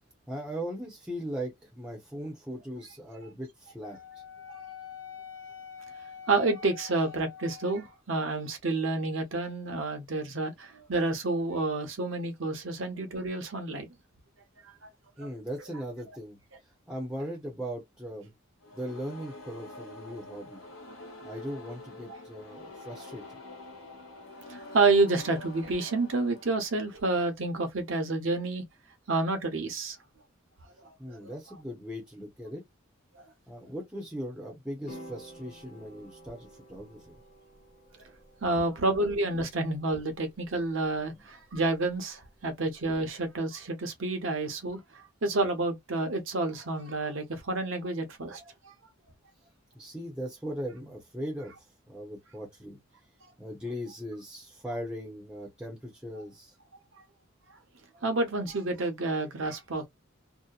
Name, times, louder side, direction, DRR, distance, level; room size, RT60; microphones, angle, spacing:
voice 1, 0.3-4.0 15.2-16.4 16.9-18.3 18.7-20.6 21.2-23.4 31.0-32.6 33.5-37.1 41.2-41.3 49.7-51.5 51.9-52.8 53.4-56.5, equal, 5° right, 0.6 m, -39 dB
Wind instrument woodwind instrument, 3.8-8.0, left 8 dB, 60° left, 0.7 m, -45 dB
voice 2, 6.3-13.9 15.2-15.3 22.1-22.2 24.5-28.6 29.1-30.0 30.8-31.2 33.2-33.3 38.4-48.4 58.0-59.9, right 2 dB, 70° right, 0.8 m, -29 dB
sound 1, 18.6-27.5, left 2 dB, 80° left, 1.0 m, -47 dB
sound 2, 34.9-43.3, right 1 dB, 35° left, 1.0 m, -53 dB
2.7 x 2.1 x 2.3 m
head